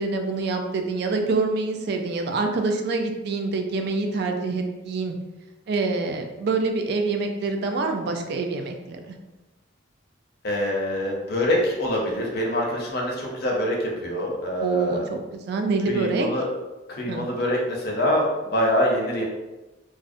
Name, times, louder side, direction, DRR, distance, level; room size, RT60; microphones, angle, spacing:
voice 1, 0.0-5.1 5.7-9.1 14.6-16.3 17.1-17.3, right 3 dB, 60° right, 4 dB, 0.3 m, -26 dB
voice 2, 10.4-15.0 15.9-16.5 16.9-19.2, left 1 dB, 55° left, -2 dB, 0.6 m, -25 dB
2.4 x 2.0 x 2.5 m, 1.1 s
head